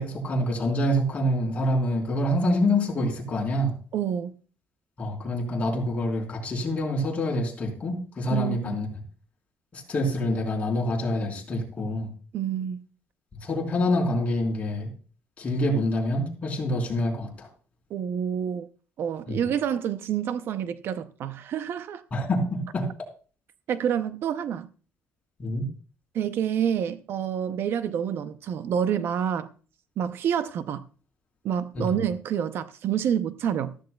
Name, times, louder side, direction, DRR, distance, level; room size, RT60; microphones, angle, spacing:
voice 1, 0.0-3.8 5.0-8.9 9.7-12.1 13.4-14.9 15.4-17.5 19.3-19.4 22.1-22.9 25.4-25.7 31.7-32.0, left 1 dB, 30° left, 3.9 m, -26 dB
voice 2, 3.9-4.3 8.3-8.8 12.3-12.8 17.9-18.7 19.0-22.0 23.7-24.7 26.1-29.5 30.0-30.8 31.4-33.7, right 8 dB, 55° right, 0.6 m, -28 dB
14.5 x 14.0 x 2.3 m
cardioid pair, 140°, 5 cm